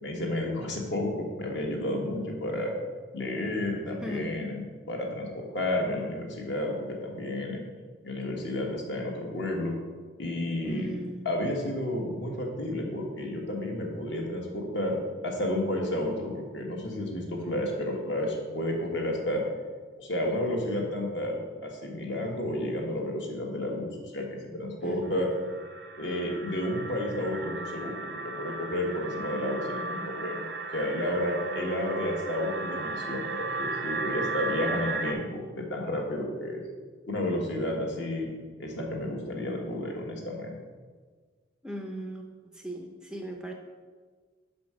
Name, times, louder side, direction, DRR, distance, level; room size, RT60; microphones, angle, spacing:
voice 1, 0.0-2.7 3.1-7.6 8.0-9.8 10.2-10.9 11.2-15.0 15.2-19.4 20.0-25.3 26.0-30.4 30.7-36.6 37.1-38.3 38.6-40.6, left 1 dB, 60° left, 0 dB, 1.3 m, -31 dB
voice 2, 4.0-4.3 10.6-11.3 24.8-25.5 31.4-32.1 41.6-42.3 42.5-43.5, right 1 dB, 5° right, 2 dB, 0.4 m, -38 dB
sound 1, 25.1-35.1, right 3 dB, 60° right, 0.5 m, -35 dB
5.5 x 5.1 x 6.1 m, 1.5 s
head